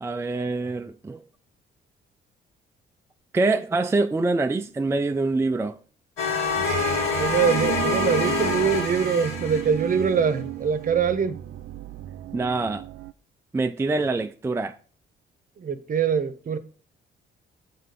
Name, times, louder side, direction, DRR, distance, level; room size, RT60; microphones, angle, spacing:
voice 1, 0.0-1.2 3.3-5.8 12.3-12.8 13.5-14.8, right 3 dB, 15° right, 0.4 m, -25 dB
sound 1, 6.2-10.1, left 3 dB, 85° left, 2.0 m, -26 dB
sound 2, 6.5-13.1, right 11 dB, 75° right, 0.5 m, -34 dB
voice 2, 7.2-11.4 15.6-16.6, right 6 dB, 45° right, 0.8 m, -23 dB
6.6 x 4.3 x 5.2 m
cardioid pair, 90°, 20 cm